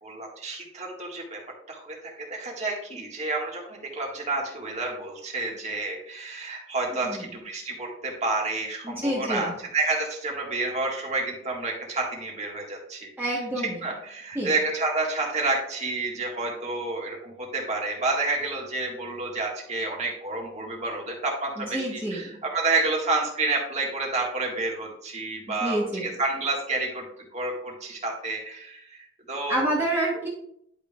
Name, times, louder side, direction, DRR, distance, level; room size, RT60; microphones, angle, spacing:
voice 1, 0.0-1.4 1.7-27.1 27.3-29.6, right 3 dB, 35° right, -1 dB, 1.8 m, -29 dB
voice 2, 6.9-7.2 8.8-9.5 13.2-13.8 14.3-14.5 21.6-22.3 25.6-26.1 29.5-30.3, right 1 dB, 10° right, -5 dB, 1.2 m, -28 dB
11.0 x 5.3 x 2.4 m, 0.71 s
head